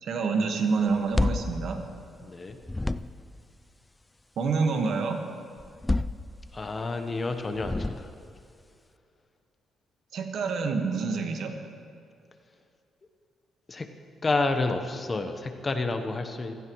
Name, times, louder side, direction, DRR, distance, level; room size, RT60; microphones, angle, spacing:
voice 1, 0.0-1.8 4.4-5.2 10.1-11.5, right 4 dB, 65° right, 4 dB, 1.5 m, -27 dB
sound 1, 0.9-2.3 2.6-3.4 5.6-6.8 7.5-8.4, left 2 dB, 15° left, 0.3 m, -30 dB
voice 2, 2.2-2.6 6.5-8.1 13.7-13.9 14.2-16.5, left 3 dB, 30° left, 7 dB, 1.0 m, -29 dB
16.5 x 15.0 x 3.2 m, 2.4 s
cardioid pair, 90°, 0 cm